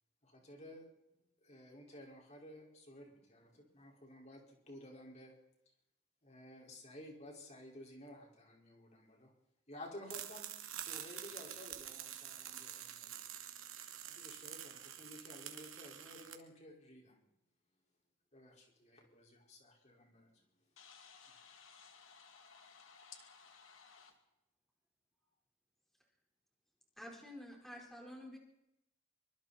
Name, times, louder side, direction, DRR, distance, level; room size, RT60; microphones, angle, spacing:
voice 1, 0.2-5.3 6.2-9.3 9.7-13.2 14.0-17.3 18.3-20.4, left 1 dB, 35° left, 0 dB, 5.0 m, -54 dB
sound 1, 10.1-16.4, right 10 dB, 90° right, 2.4 m, -47 dB
voice 2, 20.8-24.2, left 6 dB, 75° left, 4 dB, 2.4 m, -58 dB
voice 3, 27.0-28.4, left 1 dB, ahead, -1 dB, 4.4 m, -50 dB
24.5 x 24.5 x 4.3 m, 0.85 s
head